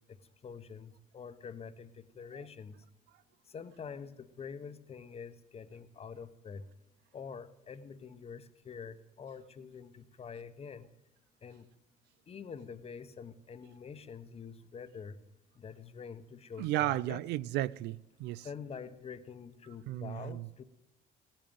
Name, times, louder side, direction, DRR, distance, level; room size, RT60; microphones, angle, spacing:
voice 1, 0.4-2.8 3.5-6.6 7.1-10.9 11.4-11.7 12.3-15.2 15.6-17.2 18.4-20.6, left 6 dB, 35° left, 1.1 m, -46 dB
voice 2, 16.6-18.5 19.9-20.5, right 15 dB, 85° right, 0.5 m, -34 dB
16.5 x 8.9 x 9.3 m
cardioid pair, 110°, 17 cm